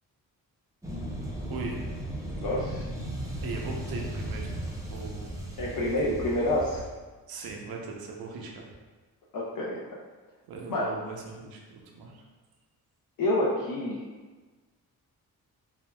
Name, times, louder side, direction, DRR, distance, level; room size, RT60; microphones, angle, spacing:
sound 1, 0.8-6.9, right 1 dB, 10° right, 0.6 m, -36 dB
voice 1, 1.5-1.9 3.4-4.6 4.9-5.3 7.3-8.7 10.5-12.2, right 4 dB, 75° right, 0 dB, 0.6 m, -39 dB
voice 2, 2.4-2.9 5.6-6.8 9.3-9.8 10.7-10.9 13.2-14.0, left 1 dB, 60° left, -6 dB, 0.6 m, -28 dB
3.4 x 2.2 x 2.2 m, 1.3 s
cardioid pair, 65°, 37 cm